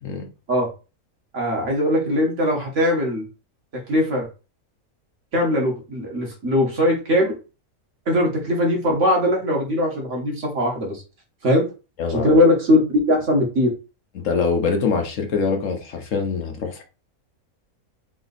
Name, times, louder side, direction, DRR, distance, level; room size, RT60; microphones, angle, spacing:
voice 1, 1.3-3.3 3.9-4.3 5.3-7.3 8.1-11.0 11.4-11.6 12.1-13.7, left 1 dB, 55° right, 1.7 m, -20 dB
voice 2, 12.0-12.4 14.2-16.8, left 5 dB, 65° left, 1.2 m, -24 dB
4.0 x 2.9 x 4.0 m
omnidirectional pair, 1.5 m